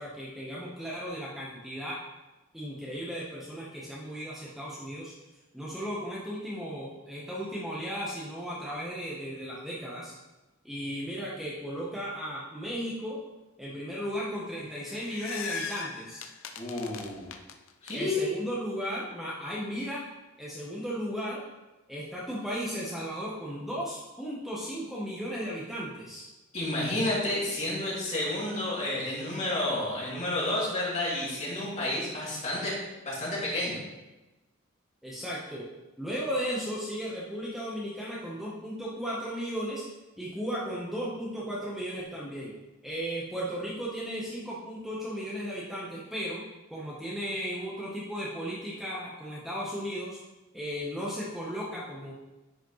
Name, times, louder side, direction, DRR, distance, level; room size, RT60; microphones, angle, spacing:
voice 1, 0.0-2.0 2.5-5.1 5.5-10.1 10.6-13.2 13.6-16.2 17.9-20.0 20.4-21.4 21.9-26.3 35.0-35.7 36.0-39.8 40.2-42.5 42.8-46.4 46.7-50.2 50.5-52.1, equal, ahead, -6 dB, 0.9 m, -35 dB
sound 1, 14.6-17.9, left 6 dB, 70° left, 0.5 m, -39 dB
voice 2, 16.6-17.3 17.8-18.3 26.5-32.8 33.0-33.8, left 1 dB, 35° left, -7 dB, 2.7 m, -30 dB
10.0 x 5.0 x 3.1 m, 1.1 s
head